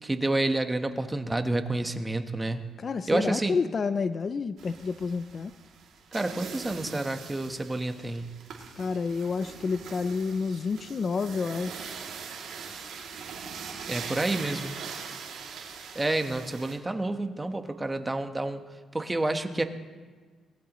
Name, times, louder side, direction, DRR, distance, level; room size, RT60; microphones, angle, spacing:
voice 1, 0.0-2.7 3.1-3.6 6.1-8.3 13.9-14.7 15.9-18.6 18.9-19.6, right 2 dB, 15° right, 7 dB, 1.2 m, -29 dB
voice 2, 2.8-5.5 8.8-12.0, left 5 dB, 40° left, 13 dB, 0.5 m, -29 dB
sound 1, 4.6-16.7, right 6 dB, 75° right, 2.7 m, -42 dB
23.0 x 19.5 x 3.1 m, 1.4 s
cardioid pair, 90°, 0 cm